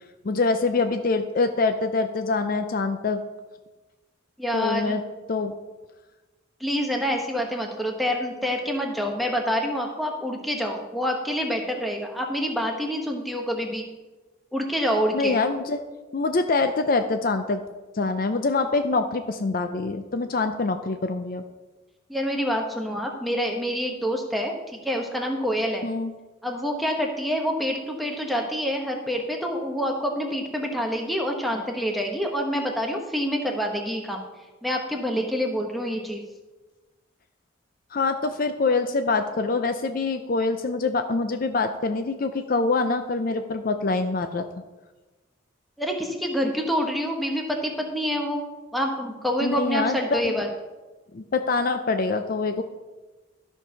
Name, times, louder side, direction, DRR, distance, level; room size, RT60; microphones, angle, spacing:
voice 1, 0.2-3.2 4.5-5.0 5.3-5.6 15.1-15.9 16.1-17.6 17.9-21.4 25.8-26.1 37.9-44.5 49.4-50.4 51.1-52.6, left 3 dB, 45° left, 8 dB, 0.5 m, -25 dB
voice 2, 4.4-5.0 6.6-13.9 14.5-15.4 22.1-24.5 24.8-25.9 26.4-34.2 34.6-36.2 45.8-48.4 48.7-50.5, equal, ahead, 1 dB, 1.0 m, -27 dB
12.5 x 4.6 x 5.6 m, 1.2 s
head